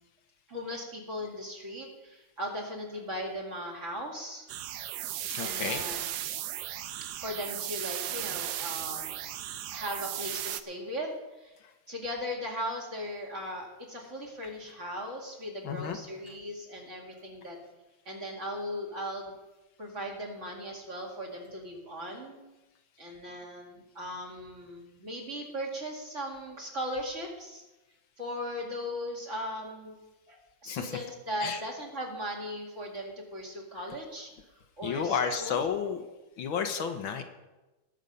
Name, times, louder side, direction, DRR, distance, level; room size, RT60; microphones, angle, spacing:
voice 1, 0.5-4.5 5.4-6.1 7.1-9.2 9.7-11.5 11.9-17.6 18.1-19.4 19.8-22.4 23.0-27.6 28.2-30.0 30.3-34.3 34.8-35.7, equal, 35° right, -1 dB, 2.5 m, -38 dB
sound 1, 4.5-10.6, right 12 dB, 70° right, 0.9 m, -36 dB
voice 2, 5.3-5.8 11.6-11.7 15.6-16.0 16.3-16.4 30.7-31.0 31.4-31.6 34.8-36.0 36.4-37.2, left 7 dB, 75° left, 6 dB, 1.7 m, -32 dB
19.5 x 6.6 x 5.4 m, 1.1 s
omnidirectional pair, 2.2 m